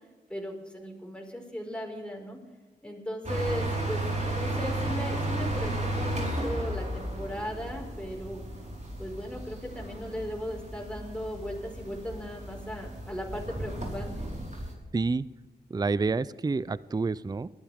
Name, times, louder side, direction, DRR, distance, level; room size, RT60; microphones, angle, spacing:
voice 1, 0.3-2.4 2.8-8.4 9.0-14.1, equal, 5° left, 0 dB, 5.1 m, -37 dB
sound 1, 3.2-14.7, right 1 dB, 40° right, 4.5 m, -34 dB
voice 2, 14.9-15.3 15.7-17.5, right 4 dB, 20° right, 19 dB, 0.4 m, -28 dB
20.5 x 12.0 x 3.6 m, 1.2 s
cardioid pair, 45°, 18 cm